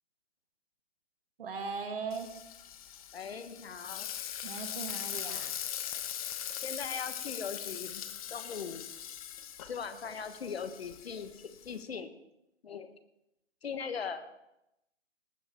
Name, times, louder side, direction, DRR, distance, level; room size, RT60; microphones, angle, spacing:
voice 1, 1.4-2.3 4.4-5.5, right 5 dB, 55° right, 5 dB, 2.3 m, -38 dB
Frying (food), 2.1-11.8, left 10 dB, 30° left, 1.0 m, -41 dB
voice 2, 3.1-4.1 6.6-8.0 8.3-8.9 9.6-12.1 12.6-12.9 13.6-14.2, left 6 dB, 60° left, 10 dB, 1.5 m, -39 dB
19.5 x 8.6 x 4.5 m, 0.86 s
figure-of-eight pair, 140°, 35 cm